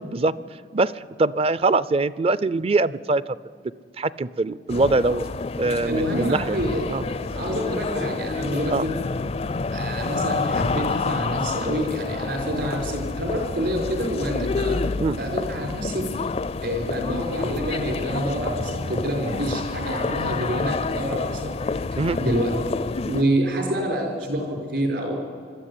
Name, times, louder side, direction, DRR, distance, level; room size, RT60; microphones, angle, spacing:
voice 1, 0.7-3.2 4.0-5.2 5.6-6.6 6.9-7.0 8.7-8.9 15.0-15.2 22.0-22.2, right 3 dB, 35° right, 18 dB, 0.5 m, -22 dB
sound 1, 4.7-23.2, left 4 dB, 35° left, 0.4 m, -29 dB
voice 2, 5.6-8.9 9.7-14.8 15.2-16.1 16.6-21.6 22.2-22.6 23.1-25.2, equal, 70° right, 2 dB, 5.6 m, -27 dB
21.5 x 13.5 x 9.9 m, 2.1 s
head